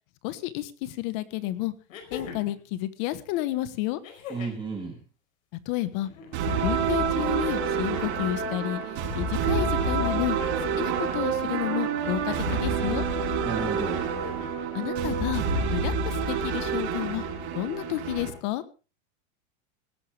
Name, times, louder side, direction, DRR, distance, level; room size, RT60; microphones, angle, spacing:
voice 1, 0.2-1.7 2.1-4.0 5.6-6.1 6.6-8.8 9.1-10.4 10.8-13.0 14.7-15.4 15.7-17.2 17.5-18.6, left 15 dB, 40° left, 14 dB, 1.3 m, -31 dB
sound 1, 0.8-0.9 1.9-2.6 4.0-4.7 6.0-6.7 7.9-8.7 10.1-10.8 12.3-12.8 14.1-14.7 16.0-16.1, left 6 dB, 85° left, 5.0 m, -43 dB
voice 2, 4.3-4.9 13.4-14.1, right 4 dB, 10° right, -1 dB, 3.2 m, -33 dB
sound 2, 6.3-18.3, right 5 dB, 50° right, 6.4 m, -28 dB
18.5 x 14.0 x 3.5 m, 0.32 s
supercardioid pair, 165°, 39 cm